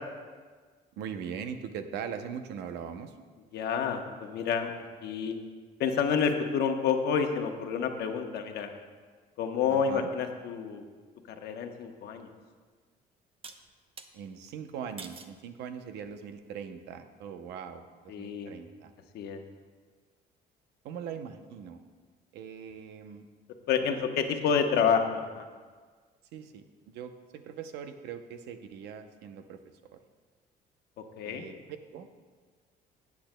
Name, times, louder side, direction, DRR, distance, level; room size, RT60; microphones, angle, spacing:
voice 1, 1.0-3.1 9.7-10.1 14.1-18.9 20.8-21.8 22.3-23.3 23.9-24.0 24.5-24.6 26.3-29.6 31.2-31.6 31.9-32.1, right 7 dB, 85° right, 8 dB, 0.7 m, -41 dB
voice 2, 3.5-4.7 5.0-5.4 5.8-8.7 9.4-10.8 11.3-12.3 18.1-18.5 19.1-19.4 23.7-24.1 24.4-25.5 31.2-31.4, left 6 dB, 70° left, 5 dB, 1.0 m, -29 dB
sound 1, 13.4-14.1 15.0-15.4 16.0-16.4, right 5 dB, 35° right, 0.6 m, -46 dB
16.0 x 8.5 x 2.2 m, 1.5 s
cardioid pair, 110°, 17 cm